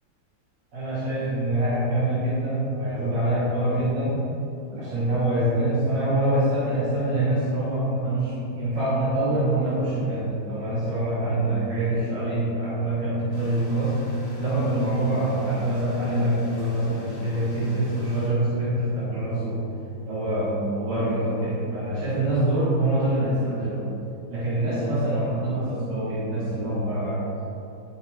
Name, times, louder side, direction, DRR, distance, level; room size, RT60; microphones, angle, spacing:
voice 1, 0.7-4.2 4.7-14.0 14.4-19.6 20.0-23.8 24.3-27.3, right 1 dB, 65° right, -10 dB, 2.6 m, -25 dB
sound 1, 13.3-18.3, left 1 dB, 30° left, 2.1 m, -44 dB
11.0 x 5.9 x 3.8 m, 2.9 s
omnidirectional pair, 2.1 m